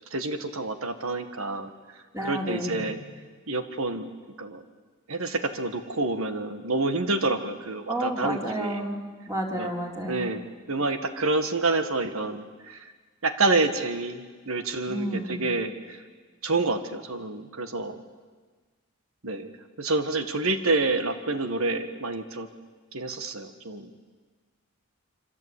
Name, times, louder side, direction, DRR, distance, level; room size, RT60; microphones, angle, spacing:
voice 1, 0.1-1.7 2.2-3.0 3.5-4.1 4.4-4.6 5.1-8.9 9.5-9.7 10.1-12.8 13.2-16.0 16.4-18.0 19.2-19.5 19.8-22.5 22.9-23.9, right 3 dB, 80° right, 9 dB, 1.7 m, -28 dB
voice 2, 2.1-2.9 7.9-9.0 9.3-10.3 14.9-15.4, right 1 dB, 15° right, 0 dB, 3.7 m, -31 dB
27.0 x 25.0 x 8.4 m, 1.4 s
head